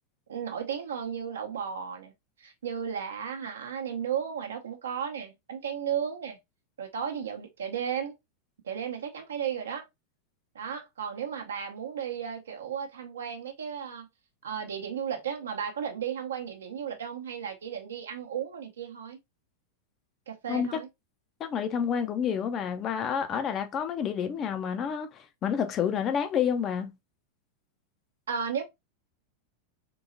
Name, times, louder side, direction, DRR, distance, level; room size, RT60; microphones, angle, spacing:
voice 1, 0.3-2.1 2.4-6.4 6.8-8.1 8.6-9.8 10.5-14.1 14.4-19.2 20.3-20.9 28.3-28.6, right 8 dB, 65° right, 0.8 m, -34 dB
voice 2, 21.4-26.9, left 8 dB, 30° left, 0.5 m, -29 dB
3.8 x 2.8 x 2.5 m
figure-of-eight pair, 90°, 0 cm